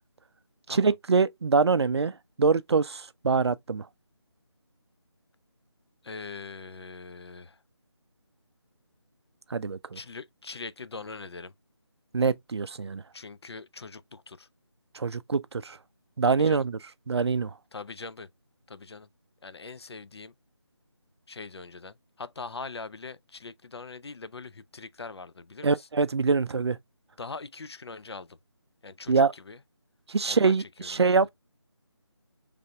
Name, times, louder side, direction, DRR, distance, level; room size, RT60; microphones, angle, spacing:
voice 1, 0.7-3.9 9.5-10.0 12.1-13.0 14.9-15.8 16.2-16.8 17.1-17.5 25.6-26.8 29.1-29.3 30.1-31.3, right 4 dB, 65° right, 0.4 m, -24 dB
voice 2, 6.0-7.6 9.9-11.5 13.1-14.5 16.2-16.7 17.7-18.3 18.7-19.1 19.4-20.3 21.3-25.9 27.2-28.4 28.8-29.6 30.3-31.2, left 4 dB, 65° left, 0.4 m, -42 dB
5.0 x 3.3 x 2.2 m
figure-of-eight pair, 165°, 15 cm